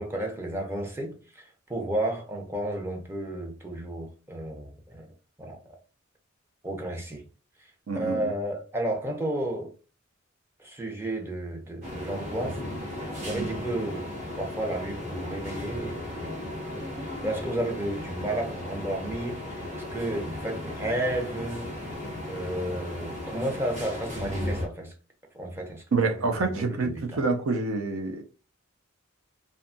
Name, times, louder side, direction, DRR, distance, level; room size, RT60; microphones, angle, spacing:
voice 1, 0.0-5.1 5.4-5.6 6.6-7.2 7.9-9.7 10.6-12.6 13.2-14.1 14.4-16.4 17.0-19.6 19.9-21.9 22.3-24.9 25.3-25.8 26.2-27.2, right 1 dB, 10° right, 0.5 m, -32 dB
voice 2, 7.9-8.3 25.9-28.2, right 3 dB, 90° right, 0.5 m, -27 dB
sound 1, 11.8-24.7, left 1 dB, 40° right, 0.8 m, -36 dB
2.7 x 2.2 x 2.5 m
head